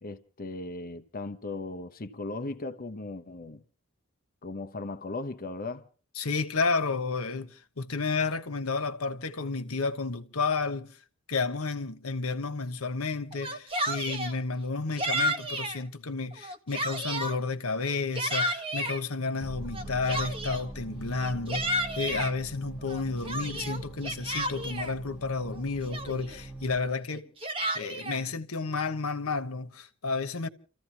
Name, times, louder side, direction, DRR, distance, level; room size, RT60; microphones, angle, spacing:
voice 1, 0.0-3.6 4.4-5.9, left 2 dB, 45° left, 0.9 m, -37 dB
voice 2, 6.2-10.9 11.3-27.3 27.7-30.5, left 4 dB, 85° left, 1.2 m, -31 dB
Yell, 13.3-14.4 15.0-15.8 16.3-17.4 17.9-19.0 19.7-20.7 21.2-22.3 22.9-24.9 25.5-25.6 25.9-26.4 27.1-28.2, right 1 dB, 25° right, 1.5 m, -32 dB
sound 1, 19.4-26.8, right 1 dB, 5° right, 2.9 m, -42 dB
30.0 x 15.0 x 3.0 m
head